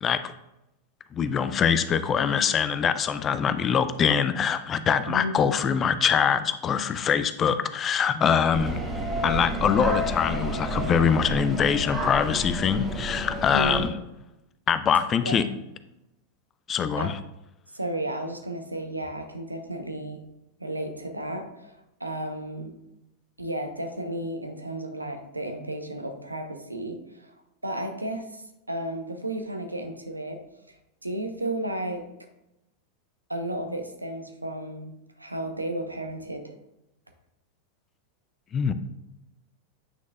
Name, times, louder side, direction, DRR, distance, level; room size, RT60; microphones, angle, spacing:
voice 1, 0.0-0.3 1.1-8.8 9.2-13.9 14.7-15.4 16.7-17.2 38.5-38.7, left 7 dB, 25° left, 12 dB, 0.4 m, -23 dB
sound 1, 8.5-13.9, right 1 dB, 5° right, 1.4 m, -30 dB
voice 2, 13.5-13.9 15.2-15.5 17.0-17.1 17.7-20.2 20.6-22.8 23.4-27.3 27.6-30.4 31.0-32.1 33.3-36.5, right 1 dB, 85° right, 6 dB, 0.8 m, -33 dB
9.2 x 6.2 x 2.3 m, 0.90 s
figure-of-eight pair, 90°, 0 cm